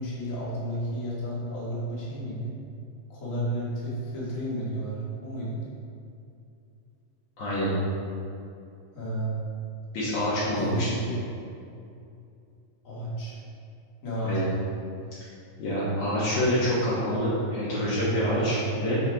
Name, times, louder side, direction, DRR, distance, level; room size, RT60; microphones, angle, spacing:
voice 1, 0.0-2.5 3.1-5.6 8.9-9.4 10.5-11.2 12.8-13.4 14.0-14.4, right 1 dB, 30° left, -7 dB, 1.6 m, -32 dB
voice 2, 7.4-7.7 9.9-10.9 14.2-14.4 15.6-19.0, equal, 65° left, -10 dB, 2.6 m, -26 dB
8.4 x 5.7 x 3.5 m, 2.6 s
omnidirectional pair, 3.9 m